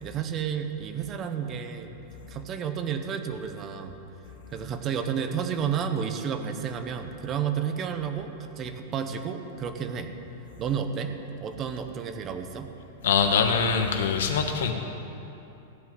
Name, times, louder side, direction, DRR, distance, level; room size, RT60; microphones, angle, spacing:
voice 1, 0.0-1.9 2.3-3.9 4.5-10.1 10.6-12.7, right 7 dB, 25° right, 7 dB, 0.9 m, -31 dB
voice 2, 13.0-14.7, left 6 dB, 85° left, 5 dB, 1.4 m, -23 dB
15.5 x 5.5 x 9.6 m, 2.9 s
supercardioid pair, 160°, 0 cm